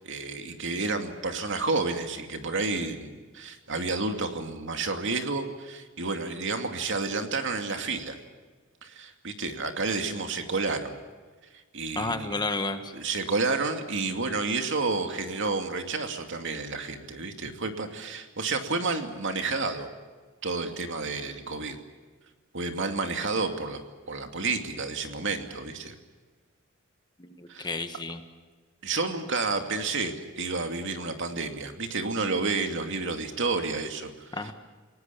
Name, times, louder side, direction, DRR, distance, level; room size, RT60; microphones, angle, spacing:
voice 1, 0.0-8.2 8.8-11.0 11.7-12.4 12.9-19.9 20.4-21.8 22.5-23.8 24.1-25.9 27.5-27.7 28.8-34.5, right 3 dB, 60° right, 5 dB, 2.6 m, -30 dB
voice 2, 11.9-12.9 27.2-28.2 34.3-34.5, left 3 dB, 20° left, 8 dB, 1.6 m, -31 dB
29.5 x 18.0 x 7.2 m, 1.4 s
head